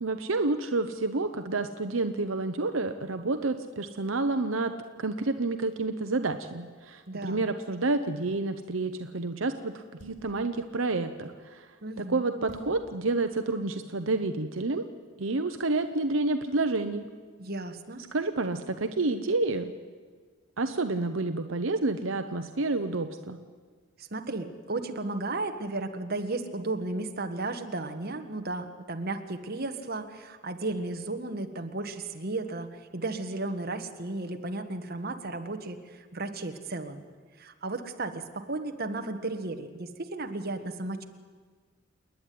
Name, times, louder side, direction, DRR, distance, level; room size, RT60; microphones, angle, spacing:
voice 1, 0.0-4.7 5.0-11.7 12.0-14.8 15.2-17.0 18.1-19.7 20.6-23.4, right 3 dB, 75° right, 8 dB, 0.9 m, -29 dB
voice 2, 7.1-7.5 11.8-12.2 17.4-18.0 24.0-37.0 37.4-41.0, right 2 dB, 50° right, 6 dB, 1.5 m, -34 dB
sound 1, 10.0-10.4 12.5-12.8, right 1 dB, 60° left, 4.4 m, -44 dB
29.0 x 10.5 x 9.4 m, 1.5 s
head